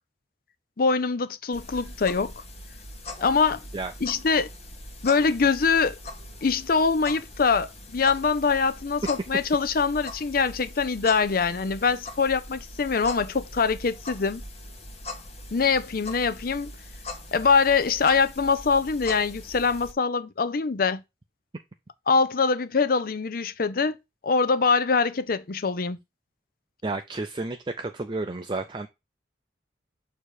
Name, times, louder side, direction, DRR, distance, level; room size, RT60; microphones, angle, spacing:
voice 1, 0.8-2.3 3.2-3.6 4.0-4.5 5.0-6.0 6.4-14.4 15.5-16.7 17.3-21.0 22.1-24.0 24.2-26.0, left 5 dB, 55° left, 0.6 m, -23 dB
sound 1, 1.5-19.9, left 2 dB, 35° left, 1.4 m, -41 dB
voice 2, 26.8-28.9, right 3 dB, 25° right, 0.5 m, -31 dB
6.7 x 3.0 x 4.7 m
head